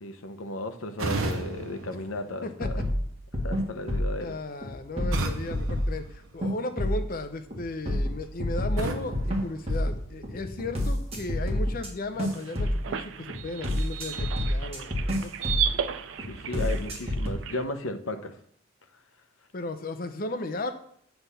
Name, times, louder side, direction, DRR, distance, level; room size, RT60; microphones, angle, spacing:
voice 1, 0.0-2.8 3.3-4.4 16.3-18.3, left 2 dB, 85° left, 8 dB, 0.8 m, -35 dB
sound 1, 1.0-3.0 5.1-6.8 8.8-10.4, right 2 dB, 85° right, 0.8 m, -35 dB
voice 2, 2.4-2.8 4.2-15.3 19.5-20.7, left 2 dB, 45° left, 8 dB, 0.6 m, -35 dB
sound 2, 2.6-4.2 4.6-6.0 6.4-7.1 7.5-11.9 12.2-12.9 13.3-15.8 16.2-17.3, left 1 dB, 30° right, 1.5 m, -29 dB
sound 3, 12.1-17.6, right 8 dB, 70° right, 0.4 m, -34 dB
8.0 x 3.5 x 5.6 m, 0.66 s
head